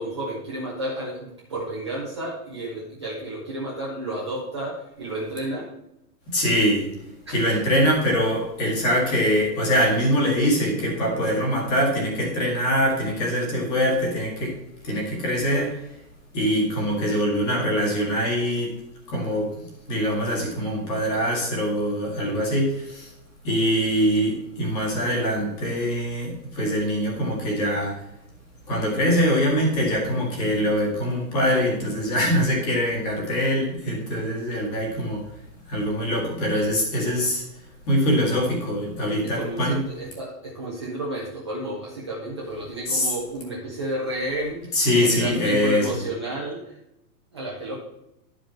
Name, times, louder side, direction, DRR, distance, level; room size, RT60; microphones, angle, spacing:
voice 1, 0.0-5.7 7.3-7.6 22.2-22.6 39.2-44.8 45.0-46.8 47.3-47.8, right 1 dB, 20° right, -6 dB, 0.6 m, -31 dB
voice 2, 6.3-7.0 7.3-16.0 16.3-18.8 19.1-23.1 23.4-28.1 28.7-35.3 35.7-37.4 37.9-39.8 42.9-43.1 44.7-45.9, equal, 25° left, -2 dB, 2.0 m, -23 dB
11.5 x 5.1 x 4.3 m, 0.85 s
hypercardioid pair, 175°, 48 cm